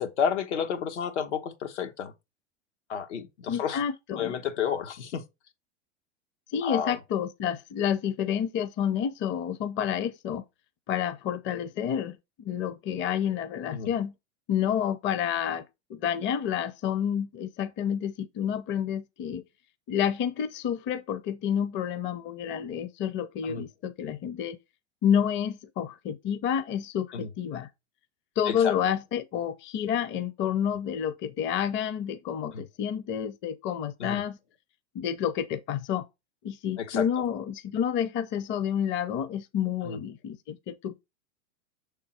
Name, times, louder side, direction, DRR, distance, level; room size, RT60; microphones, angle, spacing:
voice 1, 0.0-2.1 2.9-3.8 4.1-5.2 6.6-7.0 13.7-13.9 23.4-23.6 27.1-27.3 28.5-28.7 32.5-32.6 34.0-34.2 36.8-37.0 39.8-40.0, left 7 dB, 85° left, 1.2 m, -31 dB
voice 2, 3.5-4.3 6.5-10.4 10.9-14.1 14.5-15.6 15.9-19.4 19.9-24.6 25.0-27.7 28.4-34.4 34.9-36.0 36.4-41.0, left 9 dB, 35° left, 0.6 m, -29 dB
6.2 x 3.6 x 4.2 m
hypercardioid pair, 105°, 34 cm